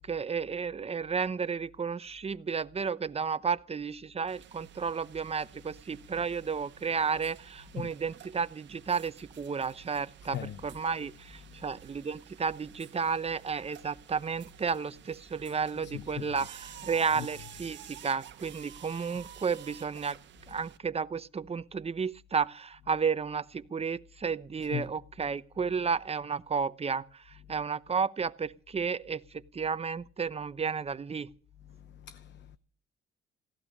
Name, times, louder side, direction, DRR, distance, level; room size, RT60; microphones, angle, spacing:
voice 1, 0.1-20.2 20.5-27.0 27.5-31.3, right 5 dB, 30° right, 0.9 m, -32 dB
sound 1, 4.3-20.8, right 10 dB, 65° right, 1.2 m, -51 dB
voice 2, 10.2-10.6 11.5-11.6 15.8-16.4 17.1-17.3 24.7-24.9 31.7-32.6, left 11 dB, 65° left, 0.9 m, -40 dB
17.0 x 12.0 x 6.6 m
cardioid pair, 90°, 20 cm